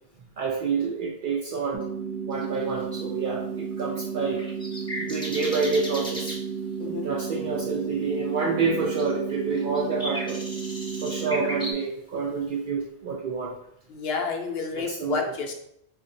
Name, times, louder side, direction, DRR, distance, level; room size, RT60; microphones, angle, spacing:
voice 1, 0.4-1.9 2.3-4.4 5.0-6.4 6.8-10.4 11.0-13.5 14.8-15.2, right 4 dB, 60° right, -2 dB, 0.6 m, -28 dB
sound 1, 1.7-11.7, right 6 dB, 80° right, 0.9 m, -33 dB
sound 2, 2.3-2.6 3.8-6.4 8.0-8.1 8.4-8.7 9.0-11.8, equal, 10° left, 0.3 m, -36 dB
voice 2, 13.9-15.5, left 5 dB, 65° left, 3 dB, 0.7 m, -30 dB
3.9 x 2.5 x 2.6 m, 0.72 s
omnidirectional pair, 1.2 m